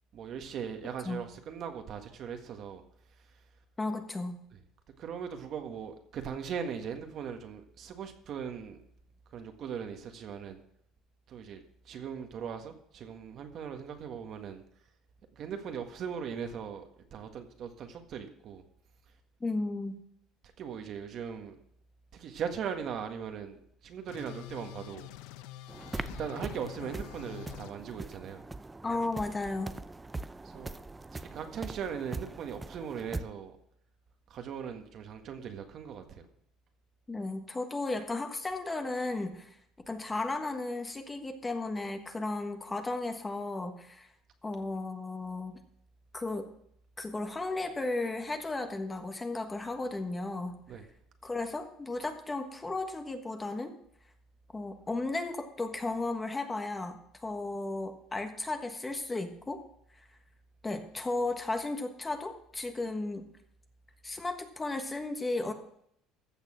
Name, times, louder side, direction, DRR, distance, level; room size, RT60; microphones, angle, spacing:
voice 1, 0.1-2.8 5.0-8.8 9.3-10.6 11.3-14.6 15.3-18.6 20.6-21.5 22.1-25.1 26.2-28.4 30.4-30.8 31.3-33.6 34.3-36.3 50.7-50.9, right 7 dB, 50° right, 5 dB, 1.7 m, -39 dB
voice 2, 3.8-4.4 19.4-20.0 28.8-29.7 37.1-39.6 39.9-44.1 44.4-45.6 46.1-46.5 47.0-50.6 51.2-53.8 54.5-59.6 60.6-63.3 64.0-65.5, left 2 dB, 15° left, 6 dB, 1.4 m, -34 dB
sound 1, 24.1-27.7, left 14 dB, 85° left, 0.7 m, -46 dB
sound 2, 25.7-33.2, right 3 dB, 15° right, 0.5 m, -42 dB
14.5 x 6.7 x 6.3 m, 0.70 s
cardioid pair, 125°, 0 cm